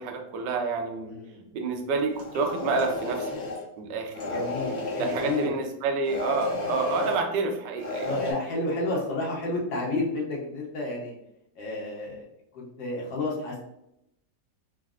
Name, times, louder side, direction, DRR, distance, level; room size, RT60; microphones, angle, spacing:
voice 1, 0.0-1.2 1.5-3.4 3.8-4.4 5.0-8.1, right 4 dB, 75° right, 4 dB, 1.2 m, -29 dB
voice 2, 1.1-1.4 4.3-5.6 8.0-11.1 11.6-12.3 12.5-13.6, left 2 dB, 75° left, -3 dB, 1.5 m, -31 dB
sound 1, 2.1-3.6 4.1-5.5 6.0-7.2 7.8-8.3, left 3 dB, 45° left, 0.9 m, -32 dB
4.0 x 2.0 x 2.4 m, 0.82 s
omnidirectional pair, 2.0 m